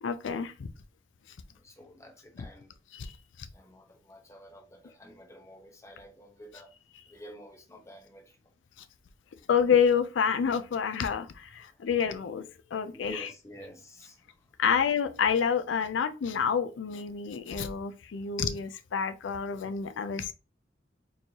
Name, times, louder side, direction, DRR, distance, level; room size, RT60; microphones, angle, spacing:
voice 1, 0.0-0.7 2.9-3.1 9.5-13.3 14.6-20.3, left 7 dB, 85° left, 0.4 m, -28 dB
voice 2, 1.6-2.7 3.5-6.7 7.1-8.4 11.6-11.8 12.9-14.4, equal, 15° left, 0.8 m, -49 dB
4.3 x 3.2 x 2.8 m
head